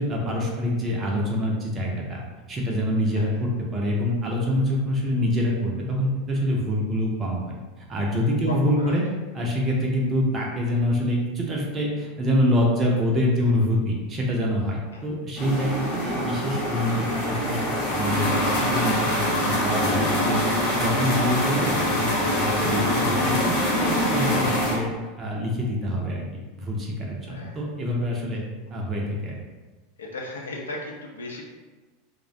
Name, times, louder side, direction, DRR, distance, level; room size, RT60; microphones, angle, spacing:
voice 1, 0.0-2.2 2.5-7.4 7.9-9.0 9.3-17.6 17.9-20.4 20.7-23.5 23.8-24.9 25.2-26.2 26.6-28.4 28.7-29.3, equal, 25° right, -2 dB, 0.5 m, -25 dB
voice 2, 8.5-9.0 14.9-15.0 27.3-27.6 30.0-31.4, left 2 dB, 75° left, -1 dB, 0.5 m, -36 dB
sound 1, 15.4-24.8, left 1 dB, 55° left, 0.8 m, -24 dB
2.3 x 2.1 x 2.5 m, 1.3 s
figure-of-eight pair, 80°, 0 cm